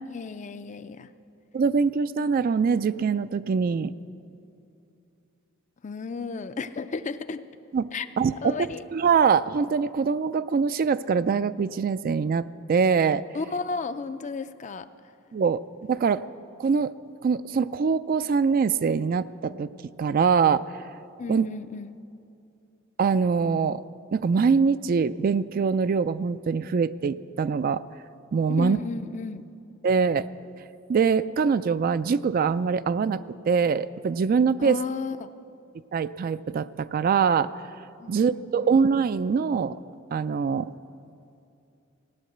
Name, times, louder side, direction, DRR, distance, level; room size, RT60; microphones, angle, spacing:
voice 1, 0.1-1.1 5.8-7.4 7.9-8.1 8.4-8.8 13.3-14.9 21.2-22.0 28.5-29.5 34.6-35.3 38.0-38.7, left 4 dB, 35° left, 12 dB, 0.4 m, -33 dB
voice 2, 1.5-3.9 7.7-7.9 8.2-8.6 8.9-13.2 15.3-15.6 15.9-16.3 16.6-16.9 17.2-19.7 20.0-20.6 21.3-21.5 23.0-23.8 24.1-27.8 28.3-28.8 29.8-30.3 30.9-34.8 35.9-37.5 38.1-39.8 40.1-40.7, right 5 dB, 45° right, 14 dB, 0.3 m, -23 dB
16.5 x 10.0 x 7.9 m, 2.6 s
head